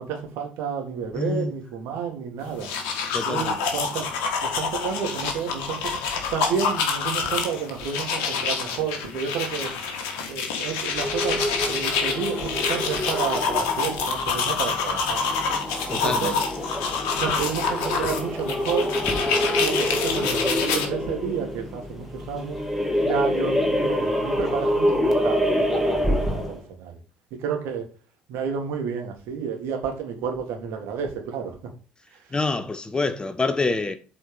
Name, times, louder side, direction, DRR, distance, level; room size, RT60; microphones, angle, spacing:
voice 1, 0.0-2.7 3.3-4.1 4.4-6.0 6.3-9.7 10.3-15.2 15.9-16.3 17.1-18.9 19.6-22.6 23.0-27.0 27.4-27.9 28.3-31.6, right 7 dB, 60° right, 2.0 m, -30 dB
voice 2, 1.1-1.5 3.1-3.6 15.9-16.4 32.3-34.0, left 3 dB, 20° left, 0.9 m, -26 dB
sound 1, 2.5-20.9, left 5 dB, 65° left, 1.5 m, -27 dB
sound 2, 10.9-26.6, equal, ahead, 2.3 m, -27 dB
7.7 x 4.3 x 5.2 m
figure-of-eight pair, 55°, 5 cm